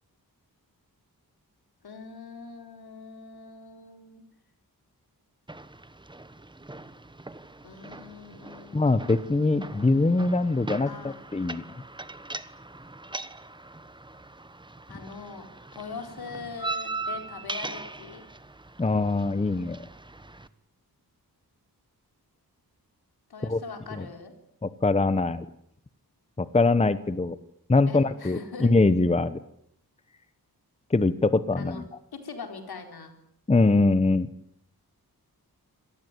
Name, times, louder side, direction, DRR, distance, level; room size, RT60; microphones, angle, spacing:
voice 1, 1.8-4.2 7.6-9.7 10.8-11.2 14.9-15.5 15.7-18.2 23.3-24.3 27.9-28.7 31.6-31.8 32.1-33.1, left 4 dB, 75° left, 6 dB, 4.6 m, -42 dB
sound 1, 5.5-20.5, right 2 dB, 10° right, 1.1 m, -40 dB
voice 2, 8.7-11.6 18.8-19.8 23.4-23.6 23.9-24.0 24.6-25.4 26.4-27.4 27.7-29.4 30.9-31.8 33.5-34.3, left 3 dB, 15° left, 14 dB, 0.9 m, -23 dB
26.5 x 19.0 x 9.4 m, 0.72 s
wide cardioid pair, 170°, 37 cm